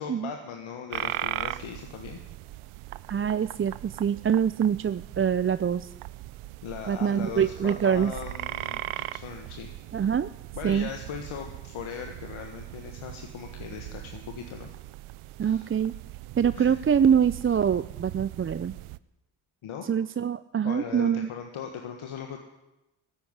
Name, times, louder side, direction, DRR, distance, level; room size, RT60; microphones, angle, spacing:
voice 1, 0.0-2.2 6.6-9.7 10.5-14.7 15.4-15.7 16.5-16.7 19.6-19.9 20.6-22.4, left 7 dB, 75° left, 3 dB, 1.6 m, -39 dB
sound 1, 0.9-19.0, right 17 dB, 90° right, 0.6 m, -39 dB
voice 2, 3.1-5.9 6.9-8.1 9.9-10.3 10.6-10.9 15.4-15.9 16.4-18.7 19.8-21.3, right 8 dB, 30° right, 14 dB, 0.4 m, -24 dB
15.0 x 8.5 x 9.7 m, 0.97 s
supercardioid pair, 55°, 48 cm